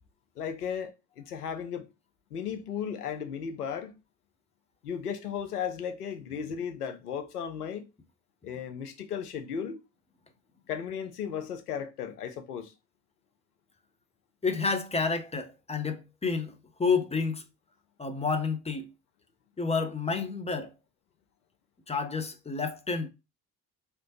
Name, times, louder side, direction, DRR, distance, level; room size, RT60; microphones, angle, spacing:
voice 1, 0.4-1.9 2.3-4.0 4.8-7.9 8.4-9.8 10.7-12.7, left 7 dB, 90° left, 0.6 m, -35 dB
voice 2, 14.4-17.4 18.0-18.9 19.6-20.7 21.9-23.1, left 4 dB, 15° left, 0.7 m, -30 dB
3.3 x 2.8 x 3.0 m
figure-of-eight pair, 50°, 44 cm